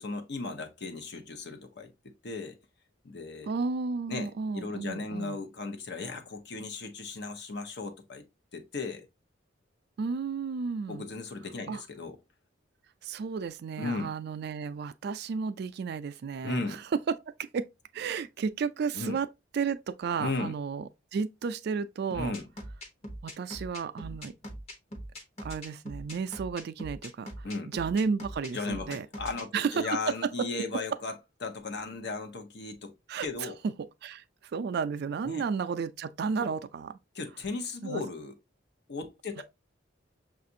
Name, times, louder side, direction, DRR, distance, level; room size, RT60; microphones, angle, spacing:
voice 1, 0.0-2.6 3.0-3.5 4.1-4.3 4.5-8.3 8.5-9.1 10.9-12.2 13.8-14.1 16.4-16.8 18.9-19.2 20.2-20.5 22.1-22.4 27.4-27.7 28.5-31.1 31.4-32.9 33.2-33.6 35.2-35.4 36.4-36.5 37.1-38.3 38.9-39.4, left 3 dB, 60° left, 0.8 m, -36 dB
voice 2, 3.5-5.4 10.0-11.1 11.7-11.8 13.0-16.8 17.1-17.7 17.9-19.3 19.5-22.3 23.2-24.3 25.4-29.1 29.5-30.3 33.1-33.7 34.0-34.2 34.5-37.0 37.8-38.0 39.4-39.5, right 5 dB, 55° right, 0.3 m, -33 dB
sound 1, 22.1-29.4, equal, 35° left, 1.0 m, -41 dB
5.9 x 2.5 x 2.6 m
head